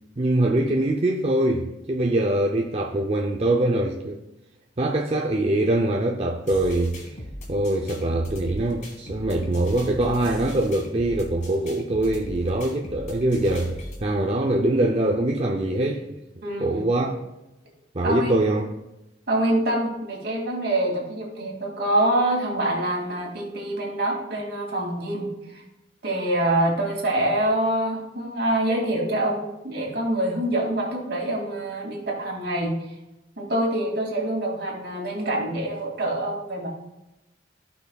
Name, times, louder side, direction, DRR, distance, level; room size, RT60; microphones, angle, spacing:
voice 1, 0.2-4.2 4.8-7.2 7.5-16.2 16.6-17.1 17.9-18.7, right 1 dB, 35° right, 0.6 m, -23 dB
sound 1, 6.5-14.0, equal, 45° left, 1.7 m, -38 dB
voice 2, 16.4-16.8 18.0-18.4 19.3-25.6 26.0-32.8 33.4-36.7, right 1 dB, 60° right, 2.4 m, -25 dB
15.5 x 5.7 x 2.3 m
head